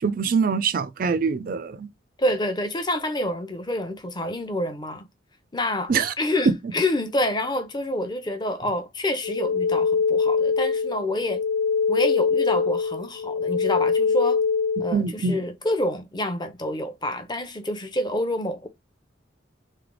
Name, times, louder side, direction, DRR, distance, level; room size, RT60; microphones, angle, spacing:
voice 1, 0.0-1.9 5.9-6.1 6.5-6.6 14.9-15.4, right 5 dB, 45° right, 0.4 m, -23 dB
voice 2, 2.2-5.1 5.5-5.9 6.2-11.4 11.9-14.4 14.8-18.7, left 1 dB, 20° left, 0.7 m, -27 dB
sound 1, 9.2-14.9, left 5 dB, 80° left, 0.3 m, -23 dB
3.3 x 3.3 x 3.7 m
head